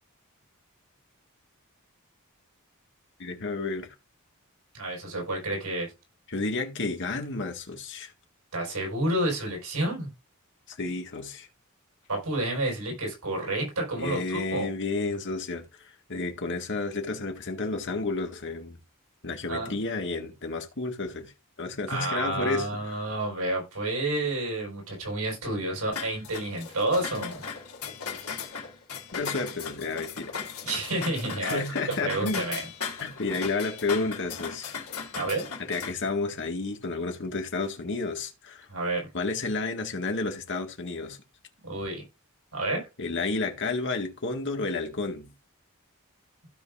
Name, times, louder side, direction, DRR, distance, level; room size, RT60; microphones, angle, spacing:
voice 1, 3.2-4.0 6.3-8.1 10.7-11.5 14.0-18.8 19.2-21.3 21.6-22.7 29.1-30.4 31.4-32.5 33.2-34.8 35.6-38.7 39.1-41.2 43.0-45.3, left 3 dB, 55° left, 1.8 m, -31 dB
voice 2, 4.7-5.9 8.5-10.1 12.1-14.7 19.5-19.7 21.9-27.4 30.6-31.6 31.9-32.6 35.1-35.5 38.7-39.1 41.6-42.0 42.5-42.8, right 2 dB, 85° right, 5.2 m, -30 dB
sound 1, 25.9-35.9, left 6 dB, 70° left, 3.0 m, -37 dB
15.5 x 5.3 x 2.5 m
head